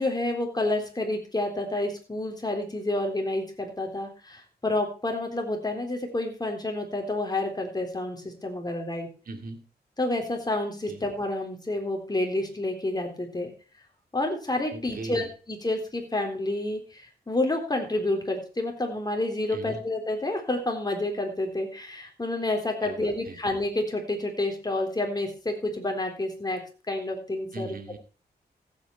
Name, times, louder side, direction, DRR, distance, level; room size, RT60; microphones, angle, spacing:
voice 1, 0.0-9.1 10.0-13.5 14.1-26.6 26.9-27.8, left 2 dB, 25° left, 3 dB, 3.8 m, -29 dB
voice 2, 9.3-9.6 10.9-11.0 14.7-15.3 19.5-19.8 22.8-23.4 27.5-28.0, right 3 dB, 60° right, 6 dB, 2.4 m, -39 dB
15.0 x 8.3 x 4.6 m, 0.36 s
cardioid pair, 80°, 17 cm